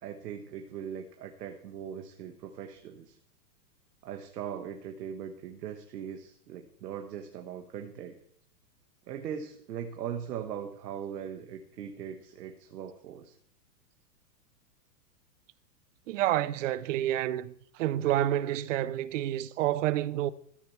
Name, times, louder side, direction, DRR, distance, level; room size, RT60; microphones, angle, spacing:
voice 1, 0.0-3.2 4.0-8.2 9.1-13.3, right 8 dB, 80° right, 1.3 m, -40 dB
voice 2, 16.1-17.5 17.8-20.3, right 13 dB, 50° right, 0.6 m, -28 dB
13.5 x 6.8 x 4.5 m
supercardioid pair, 155°, 48 cm